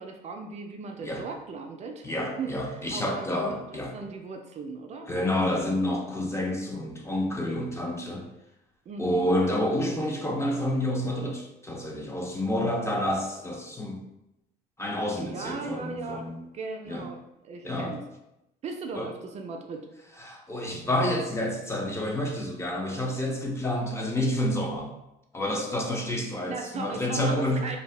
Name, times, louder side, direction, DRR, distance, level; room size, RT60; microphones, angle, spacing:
voice 1, 0.0-5.6 8.9-9.2 15.1-16.3 16.5-17.2 17.4-18.0 18.6-19.9 26.5-27.8, right 4 dB, 40° right, 3 dB, 0.4 m, -37 dB
voice 2, 2.0-3.9 5.1-8.3 9.0-14.0 14.8-16.4 16.9-17.1 17.6-18.0 18.9-19.1 20.2-24.9 25.3-27.6, left 1 dB, 15° left, 1 dB, 0.5 m, -29 dB
2.6 x 2.2 x 3.2 m, 0.87 s
cardioid pair, 110°, 17 cm